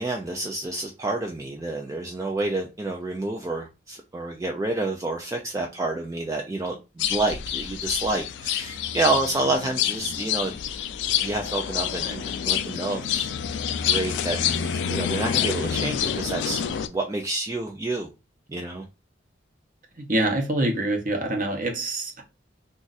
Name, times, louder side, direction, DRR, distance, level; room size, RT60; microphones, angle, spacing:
voice 1, 0.0-10.6 11.2-13.3 13.8-16.6 16.9-18.1 18.5-18.8, right 2 dB, 15° right, 0.3 m, -29 dB
sound 1, 7.0-16.9, left 9 dB, 70° left, 0.3 m, -27 dB
voice 2, 20.0-22.2, right 1 dB, 45° right, 0.8 m, -25 dB
2.4 x 2.4 x 3.9 m
head